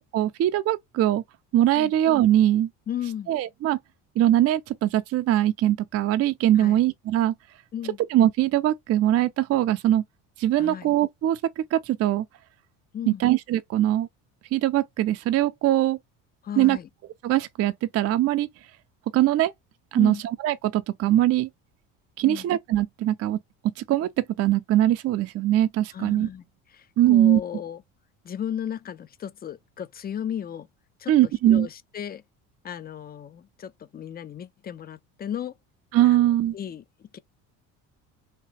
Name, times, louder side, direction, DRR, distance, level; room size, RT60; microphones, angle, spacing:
voice 1, 0.1-1.2 1.5-2.7 3.3-3.8 4.2-7.3 8.1-10.0 10.4-12.3 13.1-14.1 14.5-16.0 16.6-16.8 17.2-18.5 19.1-19.5 19.9-21.5 22.2-23.4 23.8-26.3 27.0-27.4 31.1-31.7 35.9-36.5, right 13 dB, 40° right, 0.4 m, -22 dB
voice 2, 2.9-3.3 6.6-6.8 7.7-8.0 10.6-10.9 12.9-13.2 16.4-16.9 20.0-20.2 22.2-22.4 25.9-26.4 26.7-27.8 28.2-30.7 31.0-31.1 31.4-32.2 32.6-35.5 36.0-37.2, left 9 dB, 25° left, 0.4 m, -35 dB
2.9 x 2.6 x 3.0 m
supercardioid pair, 75°, 39 cm